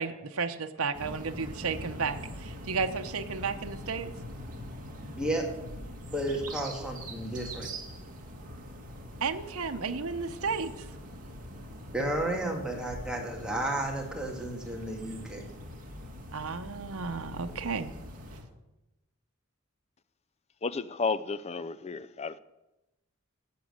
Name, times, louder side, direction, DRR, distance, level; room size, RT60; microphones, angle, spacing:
voice 1, 0.0-4.1 9.2-10.7 16.3-17.9, right 5 dB, 85° right, 0.9 m, -33 dB
sound 1, 0.9-18.4, equal, 40° right, 2.4 m, -43 dB
voice 2, 5.1-5.4 6.1-7.7 11.9-15.4, right 1 dB, 5° right, 2.1 m, -32 dB
voice 3, 20.6-22.4, left 4 dB, 30° left, 0.5 m, -32 dB
11.5 x 8.5 x 7.9 m
head